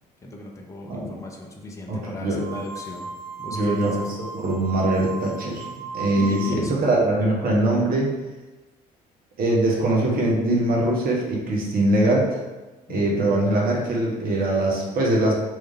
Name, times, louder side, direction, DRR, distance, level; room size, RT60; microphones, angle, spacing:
voice 1, 0.2-3.1 3.4-4.1 6.2-7.0 12.9-13.3, left 1 dB, 15° left, 0 dB, 0.6 m, -35 dB
voice 2, 1.9-2.5 3.5-3.9 4.3-8.1 9.4-12.4 12.9-15.3, right 1 dB, 45° right, -2 dB, 1.0 m, -22 dB
sound 1, 2.4-6.8, right 4 dB, 15° right, 0.9 m, -36 dB
3.1 x 2.7 x 3.5 m, 1.1 s
figure-of-eight pair, 50°, 21 cm